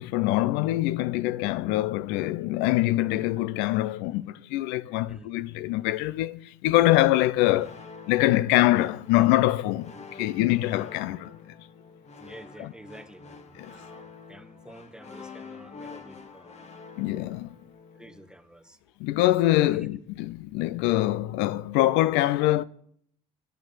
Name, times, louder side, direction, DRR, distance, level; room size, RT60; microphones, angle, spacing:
voice 1, 0.0-7.8 8.1-11.4 12.6-12.7 13.6-13.7 17.0-17.5 19.0-22.6, left 16 dB, 75° left, 0.4 m, -24 dB
sound 1, 7.5-18.4, left 5 dB, 35° left, 1.5 m, -47 dB
voice 2, 12.2-16.6 17.9-18.8 19.7-19.9, right 1 dB, 5° right, 0.9 m, -49 dB
7.2 x 6.8 x 7.7 m
hypercardioid pair, 70°, 19 cm